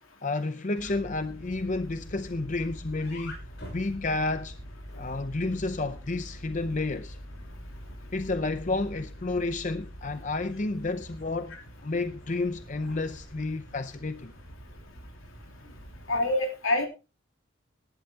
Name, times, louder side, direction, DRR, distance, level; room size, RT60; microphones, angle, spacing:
voice 1, 0.2-3.4 3.7-4.6 5.0-7.2 8.1-14.3, left 2 dB, 35° left, 0.6 m, -31 dB
sound 1, 0.8-16.3, equal, 55° left, 6.7 m, -45 dB
voice 2, 16.1-16.9, left 2 dB, 80° left, 3.4 m, -26 dB
18.5 x 11.5 x 2.9 m
head